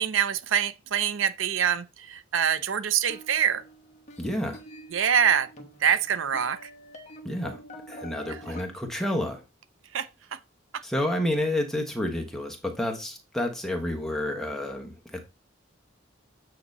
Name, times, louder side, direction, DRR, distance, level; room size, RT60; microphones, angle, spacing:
voice 1, 0.0-3.6 4.9-5.5 5.8-6.7 8.3-8.6 9.9-10.4 10.7-10.8, right 8 dB, 80° right, 0.5 m, -25 dB
sound 1, 3.1-8.6, equal, 35° left, 1.2 m, -46 dB
voice 2, 4.2-4.6 7.2-7.6 7.9-9.4 10.8-15.2, left 1 dB, ahead, 1.1 m, -29 dB
8.5 x 2.9 x 5.3 m
head